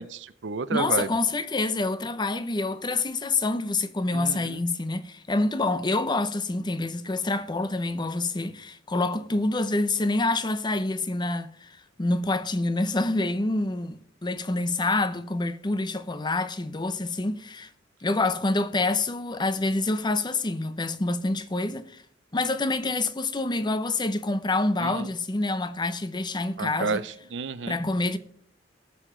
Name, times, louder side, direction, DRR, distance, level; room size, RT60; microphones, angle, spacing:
voice 1, 0.0-1.1 4.1-4.6 24.8-25.1 26.6-27.8, right 5 dB, 70° right, 0.6 m, -31 dB
voice 2, 0.7-17.7 18.0-22.0 22.3-27.0 27.7-28.2, left 2 dB, 25° left, 0.6 m, -27 dB
19.0 x 6.7 x 3.7 m
head